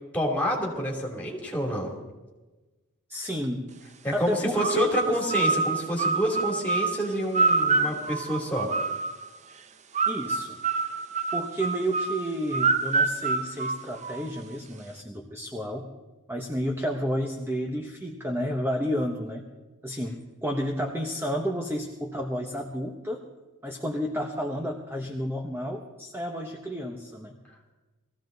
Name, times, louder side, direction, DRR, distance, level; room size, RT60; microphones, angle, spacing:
voice 1, 0.1-1.9 4.0-8.7, equal, 5° left, -1 dB, 3.1 m, -28 dB
voice 2, 3.1-3.6 4.1-5.2 10.1-10.5 11.3-15.8 16.3-19.4 19.8-23.2 23.6-27.3, equal, 10° right, 2 dB, 1.1 m, -31 dB
sound 1, 4.6-9.3 10.0-14.4, right 4 dB, 30° right, 0.6 m, -27 dB
20.0 x 15.5 x 4.0 m, 1.2 s
head